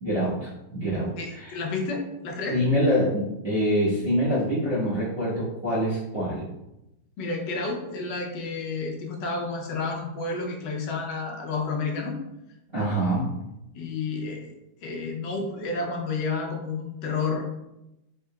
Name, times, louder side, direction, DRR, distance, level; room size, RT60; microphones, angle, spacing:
voice 1, 0.0-1.6 2.5-6.4 12.7-13.3, equal, 35° right, -13 dB, 1.1 m, -25 dB
voice 2, 1.2-2.6 7.2-12.2 13.7-14.5 14.8-17.4, left 4 dB, 70° left, 1 dB, 1.2 m, -30 dB
3.7 x 3.6 x 2.2 m, 0.91 s
omnidirectional pair, 2.2 m